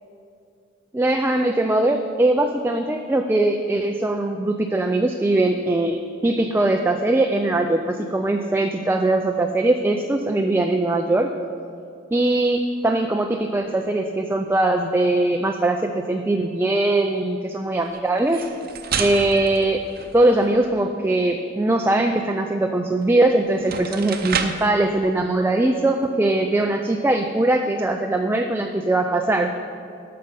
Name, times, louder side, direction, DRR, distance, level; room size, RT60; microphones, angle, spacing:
voice 1, 0.9-11.3 12.1-18.5 19.0-19.8 20.1-29.5, right 2 dB, 10° right, 4 dB, 0.4 m, -21 dB
sound 1, 18.2-20.6 23.0-23.1 23.5-24.7, right 6 dB, 55° right, 0.7 m, -30 dB
12.5 x 6.7 x 5.4 m, 2.4 s
head